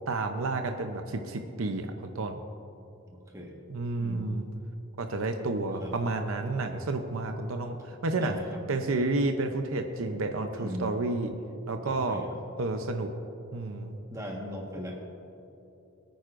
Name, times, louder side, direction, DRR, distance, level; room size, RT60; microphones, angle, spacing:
voice 1, 0.1-2.4 3.7-4.5 5.0-8.4 8.7-11.3 11.7-12.2 12.6-13.1 13.5-14.0, right 2 dB, 70° right, 5 dB, 0.6 m, -30 dB
voice 2, 3.1-3.6 4.0-4.3 5.8-5.9 8.2-8.6 10.5-10.9 11.8-12.4 14.1-15.0, equal, 15° right, -1 dB, 1.4 m, -39 dB
22.0 x 9.2 x 2.5 m, 2.8 s
head